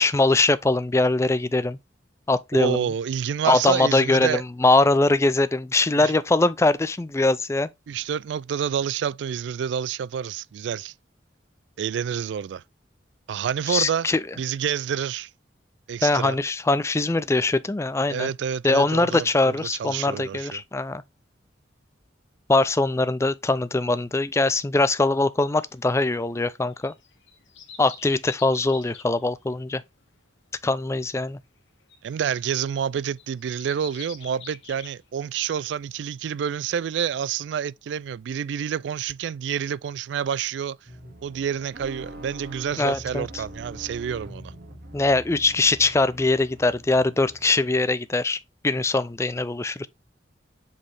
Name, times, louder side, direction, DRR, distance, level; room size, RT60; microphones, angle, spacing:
voice 1, 0.0-1.8 2.3-2.8 3.5-7.7 13.7-14.2 16.0-18.3 18.6-21.0 22.5-26.9 27.8-29.8 30.6-31.4 42.8-43.4 44.9-49.9, left 2 dB, 15° left, 0.4 m, -22 dB
voice 2, 2.5-4.4 6.0-6.1 7.9-10.9 11.8-12.6 13.3-14.1 14.4-15.3 15.9-16.4 18.1-19.5 19.8-20.6 32.0-40.8 41.2-44.5, right 8 dB, 70° right, 0.3 m, -28 dB
sound 1, 25.6-35.6 36.0-36.1, left 7 dB, 85° left, 1.4 m, -47 dB
sound 2, 40.9-47.9, equal, 55° right, 2.2 m, -43 dB
7.7 x 4.2 x 3.4 m
head